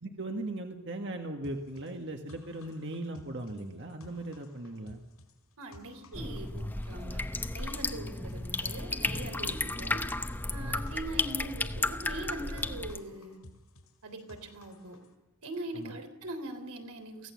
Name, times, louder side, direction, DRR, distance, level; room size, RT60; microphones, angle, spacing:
voice 1, 0.0-5.0 8.0-8.2 10.6-10.8 15.7-15.9, right 1 dB, 55° right, 3 dB, 1.6 m, -38 dB
sound 1, 1.4-15.1, left 1 dB, 80° left, 5.0 m, -56 dB
voice 2, 5.6-7.2 7.5-10.0 10.5-13.4 14.0-15.0 15.4-17.3, right 1 dB, 85° right, 6 dB, 3.7 m, -41 dB
sound 2, 6.1-13.0, left 2 dB, 10° left, 0.8 m, -34 dB
24.0 x 16.5 x 7.4 m, 1.0 s
head